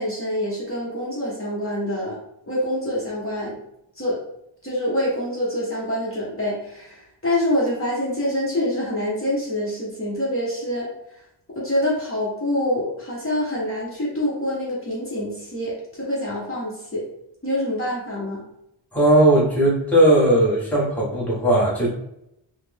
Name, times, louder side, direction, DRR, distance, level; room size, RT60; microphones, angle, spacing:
voice 1, 0.0-2.2 2.5-3.6 3.9-4.2 4.6-11.3 11.5-17.0 17.4-18.4, left 1 dB, 30° left, -6 dB, 0.9 m, -26 dB
voice 2, 18.9-21.9, right 1 dB, 5° left, -6 dB, 1.0 m, -17 dB
4.0 x 2.0 x 3.4 m, 0.81 s
wide cardioid pair, 120°, 47 cm